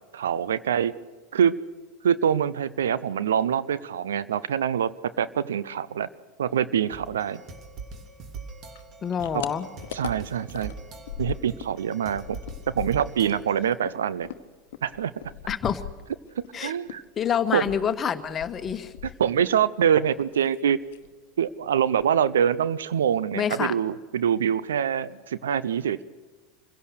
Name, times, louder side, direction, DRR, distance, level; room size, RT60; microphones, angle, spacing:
voice 1, 0.1-0.9 1.3-1.6 2.0-6.1 6.4-7.4 9.3-9.4 9.9-10.7 11.2-12.4 12.7-14.3 14.8-15.1 16.4-17.0 17.5-17.6 19.2-20.8 21.4-26.0, right 8 dB, 75° right, 17 dB, 0.7 m, -25 dB
sound 1, 6.9-13.8, right 4 dB, 40° right, 2.8 m, -42 dB
sound 2, 8.7-11.8 12.0-16.5 16.9-19.6 19.9-20.6 20.9-21.1 21.5-21.6 21.8-22.4, left 11 dB, 70° left, 1.0 m, -40 dB
voice 2, 9.0-9.7 15.5-15.8 16.5-16.7 17.2-18.9 23.3-23.8, left 8 dB, 30° left, 10 dB, 1.4 m, -27 dB
26.5 x 16.5 x 6.5 m, 1.3 s
hypercardioid pair, 85°, 0 cm